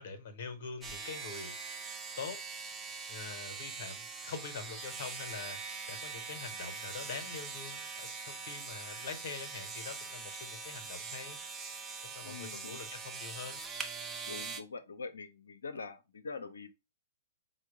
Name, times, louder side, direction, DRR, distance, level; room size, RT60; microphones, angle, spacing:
voice 1, 0.0-1.5 2.2-2.4 3.1-5.6 5.9-11.4 12.0-13.6, left 5 dB, 50° left, 0.9 m, -44 dB
sound 1, 0.8-14.6, right 4 dB, 15° right, 0.6 m, -43 dB
voice 2, 12.2-12.8 14.3-16.7, left 4 dB, 70° left, 0.6 m, -44 dB
4.4 x 2.2 x 4.7 m
figure-of-eight pair, 110°, 0 cm